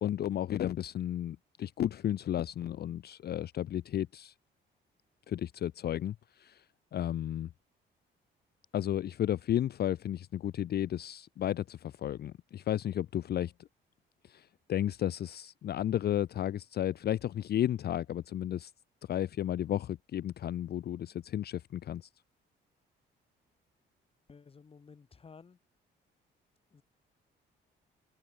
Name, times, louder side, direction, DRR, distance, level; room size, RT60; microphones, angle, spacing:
voice 1, 0.0-4.3 5.3-6.6 6.9-7.5 8.7-13.5 14.2-18.7 19.1-22.1, left 11 dB, 55° left, 0.5 m, -33 dB
voice 2, 24.3-25.6 26.7-26.8, left 5 dB, 30° left, 1.0 m, -54 dB
cardioid pair, 90°, 20 cm